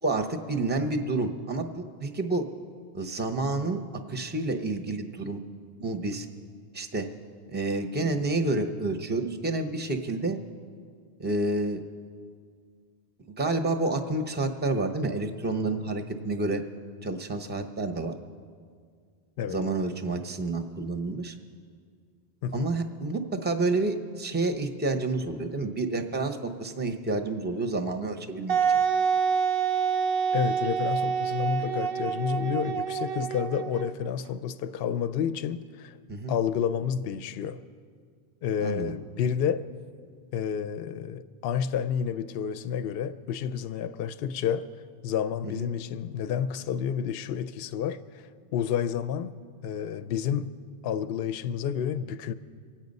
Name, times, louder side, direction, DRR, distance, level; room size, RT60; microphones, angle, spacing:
voice 1, 0.0-2.5 2.9-3.8 4.1-5.4 5.8-6.3 6.7-7.1 7.5-10.4 11.2-11.8 13.4-16.6 17.0-18.1 19.5-21.3 22.5-28.6 36.1-36.3 38.6-38.9 45.4-45.7, right 2 dB, 10° right, 0.6 m, -29 dB
Wind instrument woodwind instrument, 28.5-34.1, right 7 dB, 60° right, 0.7 m, -27 dB
voice 2, 30.3-36.0 36.3-37.6 38.4-39.7 40.3-44.7 45.0-49.3 49.6-50.5 50.8-52.3, left 8 dB, 65° left, 0.7 m, -30 dB
24.5 x 8.9 x 5.3 m
omnidirectional pair, 1.1 m